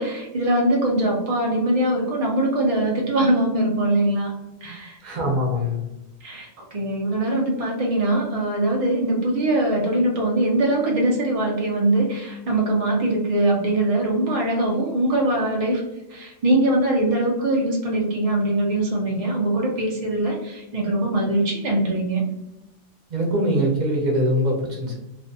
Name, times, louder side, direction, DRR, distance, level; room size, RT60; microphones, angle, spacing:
voice 1, 0.0-4.3 4.6-5.0 6.2-15.8 16.1-22.2, right 1 dB, 70° right, -1 dB, 0.3 m, -22 dB
voice 2, 5.0-5.8 23.1-25.0, equal, 45° right, -1 dB, 0.7 m, -22 dB
2.5 x 2.2 x 2.5 m, 0.95 s
omnidirectional pair, 1.3 m